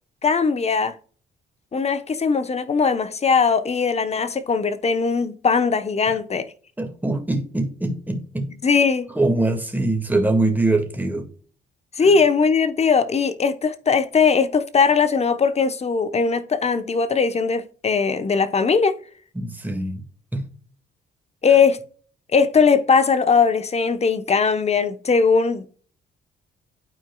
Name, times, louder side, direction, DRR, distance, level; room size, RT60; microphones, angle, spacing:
voice 1, 0.2-0.9 1.7-6.5 8.6-9.1 12.0-19.0 21.4-21.8 22.3-25.7, left 5 dB, 30° left, 0.9 m, -19 dB
voice 2, 6.8-8.5 9.2-11.3 12.0-12.1 19.3-20.0 20.3-20.5, right 2 dB, 10° right, 1.9 m, -23 dB
12.5 x 4.5 x 2.3 m
cardioid pair, 90°, 20 cm